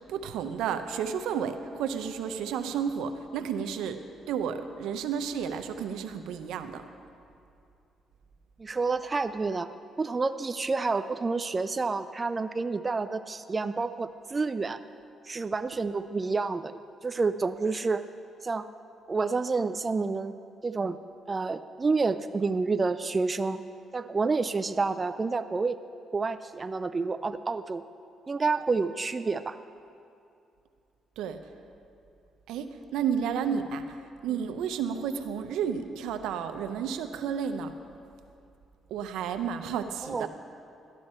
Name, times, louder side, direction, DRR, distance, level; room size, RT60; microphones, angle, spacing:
voice 1, 0.1-4.0 4.3-6.8 31.2-31.4 32.5-34.0 34.2-37.7 38.9-40.3, right 7 dB, 90° right, 8 dB, 0.6 m, -32 dB
voice 2, 8.6-9.7 10.0-14.8 15.3-18.0 18.4-18.7 19.1-20.3 20.6-21.0 21.3-23.6 23.9-25.8 26.1-27.8 28.3-29.6 33.5-33.6 40.0-40.3, right 4 dB, 30° right, 11 dB, 0.3 m, -29 dB
13.0 x 11.5 x 4.3 m, 2.5 s
cardioid pair, 90°, 0 cm